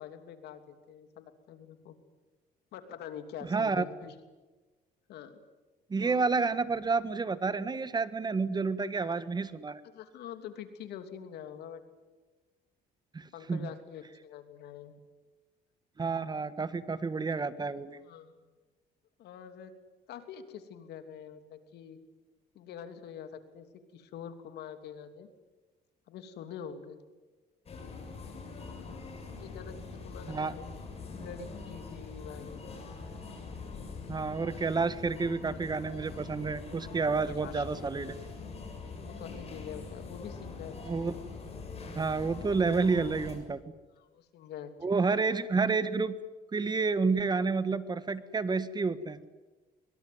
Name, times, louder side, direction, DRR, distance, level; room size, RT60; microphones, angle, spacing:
voice 1, 0.0-2.0 2.7-4.1 5.1-5.4 6.0-6.2 9.9-11.8 13.3-14.9 18.0-18.3 19.2-19.7 20.1-22.0 22.5-23.7 23.9-25.3 26.1-27.0 29.4-30.8 31.1-32.8 37.4-37.6 39.0-40.7 41.0-41.2 44.0-44.7 45.0-45.1, left 8 dB, 75° left, 8 dB, 3.1 m, -45 dB
voice 2, 3.5-3.8 5.9-9.8 13.1-13.7 16.0-18.0 30.3-30.5 34.1-38.2 40.8-41.1 41.9-43.6 44.8-46.2 46.5-49.2, right 4 dB, 25° right, 14 dB, 1.4 m, -30 dB
sound 1, 27.7-43.4, left 4 dB, 35° left, 7.4 m, -43 dB
23.5 x 23.5 x 9.5 m, 1.2 s
cardioid pair, 110°, 17 cm